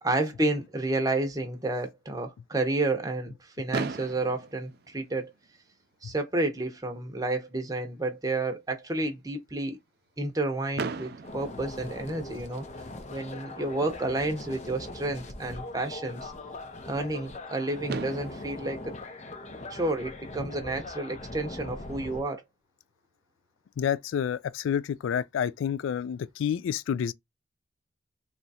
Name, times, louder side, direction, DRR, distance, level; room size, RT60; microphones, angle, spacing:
voice 1, 0.0-5.3 6.0-9.8 10.2-12.6 13.1-16.3 16.8-18.9 19.7-22.4, right 2 dB, 20° right, 0.7 m, -30 dB
Fireworks, 3.7-5.7 6.6-6.7 6.8-7.1 7.4-7.5 10.8-12.6 14.3-14.4 17.4-17.5 17.9-20.2, right 4 dB, 55° right, 0.4 m, -38 dB
sound 1, 11.2-22.2, left 2 dB, 35° left, 0.5 m, -41 dB
voice 2, 23.8-27.1, left 8 dB, 85° left, 0.3 m, -29 dB
3.0 x 2.4 x 4.1 m
head